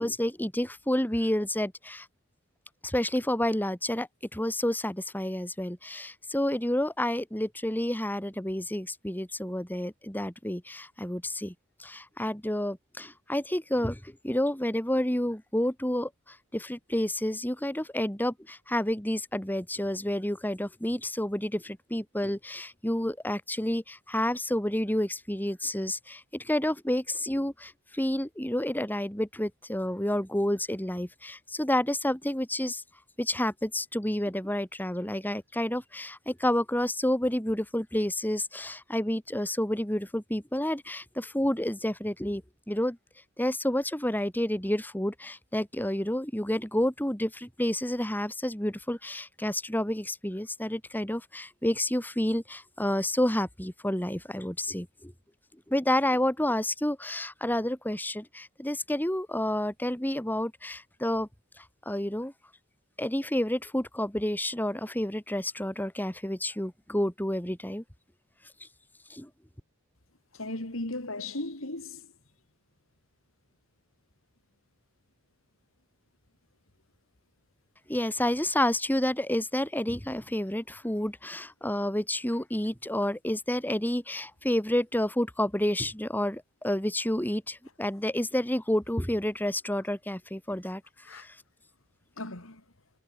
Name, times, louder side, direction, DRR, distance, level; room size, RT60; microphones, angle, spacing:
voice 1, 0.0-2.1 2.8-11.5 11.8-32.8 33.2-43.0 43.4-55.1 55.7-61.3 61.6-62.3 63.0-67.8 69.1-69.3 77.9-90.8 91.1-91.4, left 1 dB, 10° left, 2.8 m, -30 dB
voice 2, 70.3-72.0 91.1-91.2 92.2-92.6, left 2 dB, 70° left, 4.0 m, -36 dB
head